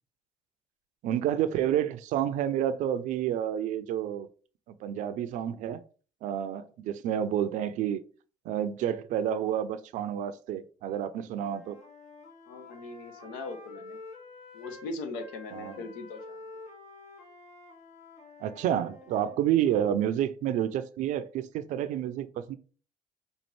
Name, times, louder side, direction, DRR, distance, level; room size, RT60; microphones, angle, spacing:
voice 1, 1.0-4.3 4.7-5.8 6.2-8.0 8.5-11.8 15.5-15.8 18.4-22.6, right 10 dB, 70° right, 0.5 m, -29 dB
Wind instrument woodwind instrument, 11.3-14.9 15.2-19.4, left 3 dB, 65° left, 1.3 m, -49 dB
voice 2, 12.5-14.0 14.5-16.4 19.2-19.3 19.7-19.9, left 3 dB, 85° left, 0.7 m, -40 dB
5.3 x 2.5 x 3.1 m
supercardioid pair, 65°, 13 cm